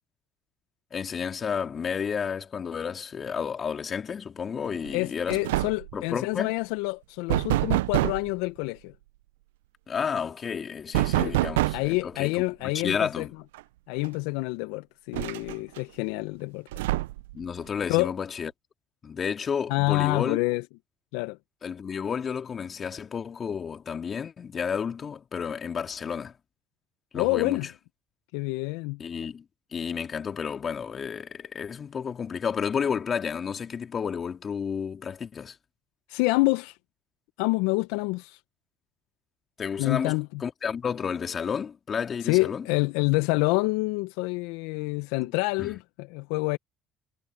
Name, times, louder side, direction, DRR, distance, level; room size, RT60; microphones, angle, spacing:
voice 1, 0.9-5.4 5.9-6.5 9.9-12.3 12.6-13.3 17.3-18.5 19.0-20.4 21.6-26.3 27.1-27.7 29.0-29.4 29.7-35.6 39.6-42.7 45.2-45.3 45.6-45.7, left 7 dB, 45° left, 3.5 m, -31 dB
sound 1, 4.8-5.0 5.3-6.0 7.3-8.3 10.9-12.0 13.5-13.6 14.0-14.1 15.1-15.8 16.7-17.4, right 18 dB, 80° right, 0.7 m, -26 dB
voice 2, 4.9-8.9 11.2-11.3 11.7-13.3 13.9-16.7 17.9-18.1 19.7-20.6 21.1-21.4 27.1-27.7 28.3-29.0 36.1-36.8 37.4-38.4 39.8-40.4 42.2-46.6, left 24 dB, 75° left, 1.1 m, -27 dB
hypercardioid pair, 55°, 0 cm